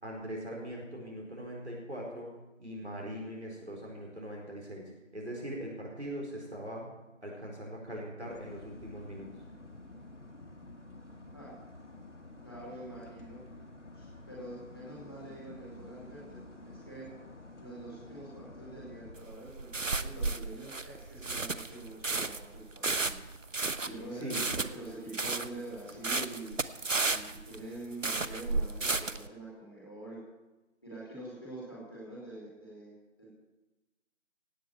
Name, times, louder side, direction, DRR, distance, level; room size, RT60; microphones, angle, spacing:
voice 1, 0.0-2.3 2.6-6.9 7.2-9.3 24.2-24.5, equal, 60° right, -2 dB, 4.5 m, -41 dB
sound 1, 8.2-19.2, left 2 dB, 65° left, 2.3 m, -50 dB
voice 2, 12.4-13.4 13.9-17.1 17.6-23.2 23.8-26.5 27.0-30.2 30.8-32.9 33.2-33.3, right 2 dB, 20° left, -6 dB, 4.5 m, -45 dB
sound 2, 19.1-29.3, right 3 dB, 75° right, 1.0 m, -33 dB
17.0 x 7.9 x 9.0 m, 1.1 s
figure-of-eight pair, 180°, 39 cm